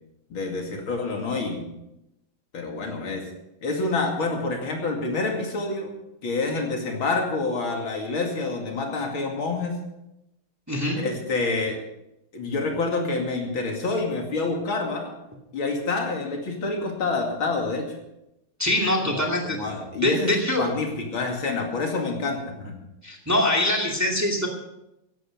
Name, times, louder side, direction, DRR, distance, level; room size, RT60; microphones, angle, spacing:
voice 1, 0.3-1.7 2.5-3.3 3.6-9.8 11.0-11.8 12.3-15.1 15.5-17.9 19.1-22.8, left 3 dB, 70° left, 2 dB, 3.2 m, -27 dB
voice 2, 10.7-11.0 18.6-19.6 20.0-20.6 23.0-24.5, left 1 dB, 10° right, 0 dB, 2.2 m, -23 dB
15.0 x 12.0 x 5.2 m, 0.86 s
omnidirectional pair, 2.3 m